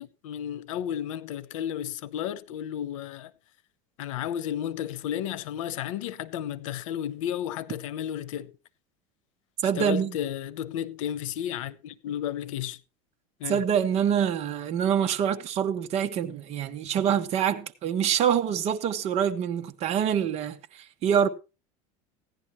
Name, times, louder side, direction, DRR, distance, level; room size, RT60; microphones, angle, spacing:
voice 1, 0.0-3.3 4.0-8.5 9.8-12.8 13.4-13.6, left 10 dB, 90° left, 0.8 m, -33 dB
voice 2, 9.6-10.2 13.5-21.3, right 8 dB, 40° right, 1.2 m, -26 dB
16.0 x 10.5 x 3.1 m
supercardioid pair, 140°, 16 cm